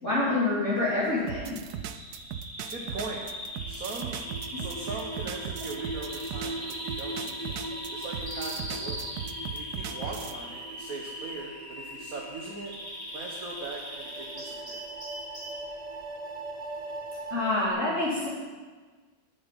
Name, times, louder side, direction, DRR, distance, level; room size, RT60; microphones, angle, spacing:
voice 1, 0.0-1.6 4.5-4.6 17.3-18.3, left 2 dB, 45° left, -8 dB, 2.8 m, -27 dB
sound 1, 1.3-10.4, right 9 dB, 70° right, 1.1 m, -38 dB
Bird vocalization bird call bird song, 1.6-15.6, equal, 10° right, 3.8 m, -40 dB
voice 2, 2.7-3.2 3.7-4.2 4.6-7.6 7.9-9.0 9.5-12.7 13.1-14.9, right 3 dB, 55° right, -1 dB, 1.6 m, -40 dB
sound 2, 3.5-17.7, right 2 dB, 35° right, 0.7 m, -41 dB
8.9 x 7.5 x 9.1 m, 1.4 s
omnidirectional pair, 1.9 m